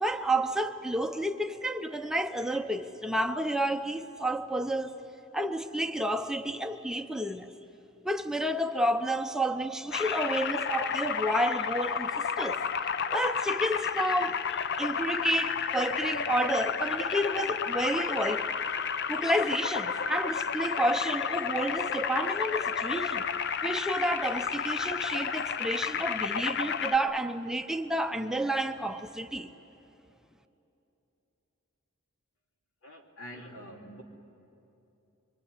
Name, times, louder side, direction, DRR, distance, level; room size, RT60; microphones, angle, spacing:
voice 1, 0.0-5.0 5.3-7.5 8.0-12.6 13.1-18.5 19.1-23.2 23.6-29.5, right 1 dB, 5° right, 0.6 m, -30 dB
sound 1, 9.9-27.0, left 6 dB, 55° left, 0.6 m, -31 dB
voice 2, 32.8-34.0, equal, 80° left, 3.3 m, -45 dB
24.5 x 24.0 x 10.0 m
head